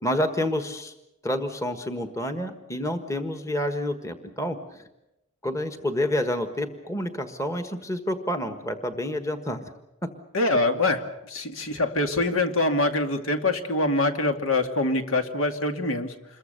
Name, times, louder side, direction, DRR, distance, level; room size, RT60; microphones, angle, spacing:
voice 1, 0.0-0.9 1.2-4.8 5.4-9.7 10.0-10.1, left 1 dB, 15° left, 8 dB, 1.4 m, -29 dB
voice 2, 10.3-16.1, left 2 dB, 70° left, 6 dB, 2.3 m, -24 dB
27.5 x 22.5 x 6.7 m, 0.92 s
head